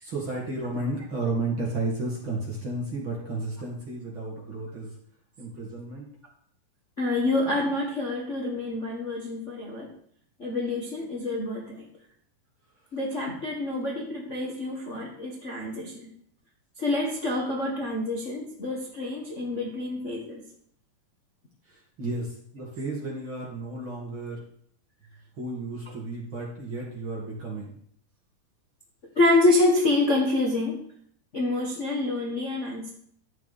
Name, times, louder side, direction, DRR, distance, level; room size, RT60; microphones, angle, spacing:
voice 1, 0.0-4.9 5.4-6.1 21.7-24.4 25.4-27.7, right 2 dB, 40° right, -3 dB, 2.7 m, -33 dB
voice 2, 7.0-9.9 10.4-11.9 12.9-16.1 16.8-20.4 29.1-30.8 31.3-33.0, left 2 dB, 35° left, -2 dB, 1.2 m, -27 dB
13.0 x 8.9 x 4.3 m, 0.63 s
omnidirectional pair, 3.8 m